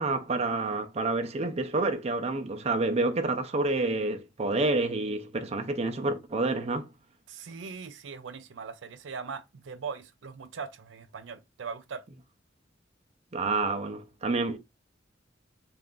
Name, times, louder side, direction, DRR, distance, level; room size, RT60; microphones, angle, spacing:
voice 1, 0.0-6.9 13.3-14.6, right 2 dB, 35° right, 0.5 m, -28 dB
voice 2, 7.3-12.0, right 5 dB, 85° right, 0.5 m, -40 dB
3.3 x 2.5 x 3.6 m
head